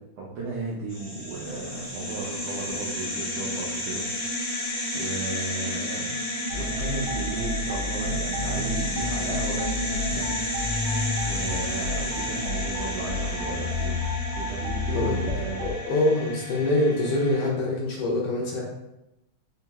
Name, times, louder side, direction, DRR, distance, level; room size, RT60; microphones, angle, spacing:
voice 1, 0.2-4.1 4.4-4.6 4.9-6.2 6.5-10.5 11.2-14.0 14.3-15.6, right 3 dB, 90° right, -5 dB, 1.3 m, -35 dB
sound 1, 0.9-17.5, left 1 dB, 55° left, 0.9 m, -32 dB
sound 2, 6.5-15.7, left 2 dB, 70° right, 1.7 m, -31 dB
voice 2, 15.6-18.6, left 2 dB, 75° left, -2 dB, 1.7 m, -24 dB
4.6 x 2.8 x 2.2 m, 0.91 s
omnidirectional pair, 3.5 m